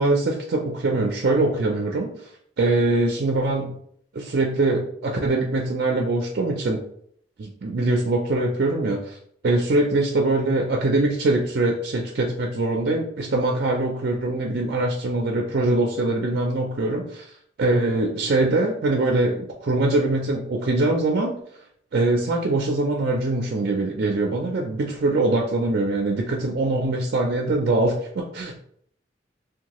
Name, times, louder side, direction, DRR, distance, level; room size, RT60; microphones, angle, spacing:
voice 1, 0.0-2.1 2.6-3.8 4.1-6.8 7.4-9.2 9.4-17.3 17.6-21.4 21.9-28.7, right 2 dB, 55° right, 0 dB, 0.4 m, -23 dB
2.7 x 2.2 x 2.9 m, 0.66 s
head